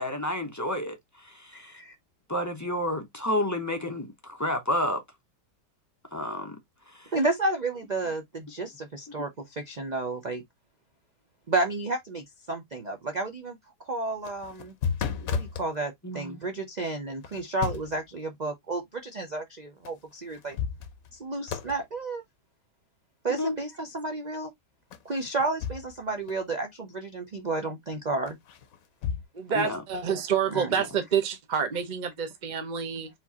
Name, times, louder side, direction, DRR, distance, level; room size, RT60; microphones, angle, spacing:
voice 1, 0.0-1.7 2.3-5.0 6.1-6.6 6.9-7.1 16.0-16.4 23.3-23.6 29.5-29.8 30.8-30.9, left 1 dB, 20° left, 0.5 m, -30 dB
voice 2, 1.5-2.0 7.1-10.4 11.5-14.7 15.3-20.6 21.1-22.2 23.2-24.5 25.0-28.4 30.5-30.7, right 2 dB, 75° right, 0.4 m, -31 dB
sound 1, 14.1-15.7 17.2-18.0 19.9-20.0 20.3-21.2 21.5-21.8 24.9-26.0 26.3-26.4 28.3-29.2, left 7 dB, 60° left, 1.1 m, -33 dB
voice 3, 29.3-33.1, right 7 dB, 35° right, 0.7 m, -28 dB
4.7 x 3.8 x 2.8 m
omnidirectional pair, 1.8 m